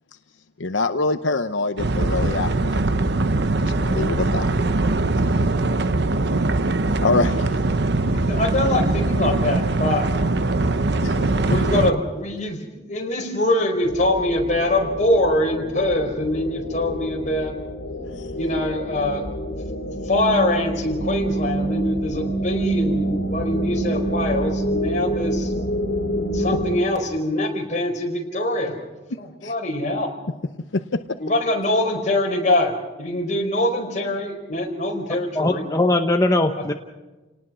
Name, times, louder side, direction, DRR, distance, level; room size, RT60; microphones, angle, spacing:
voice 1, 0.6-2.8 3.6-4.5 7.0-7.4 11.0-11.6 29.4-29.5, left 3 dB, 80° left, 9 dB, 0.8 m, -25 dB
sound 1, 1.8-11.9, right 2 dB, 60° right, 0.9 m, -21 dB
voice 2, 8.3-10.3 11.5-17.5 18.4-19.3 20.0-25.5 26.3-28.9 29.2-30.1 31.2-32.7 33.0-35.7, left 1 dB, 40° left, 2 dB, 4.6 m, -23 dB
sound 2, 13.8-26.8, right 1 dB, 55° left, 3.4 m, -27 dB
voice 3, 35.3-36.7, left 2 dB, 20° left, 4 dB, 0.9 m, -20 dB
30.0 x 19.0 x 6.2 m, 1.2 s
head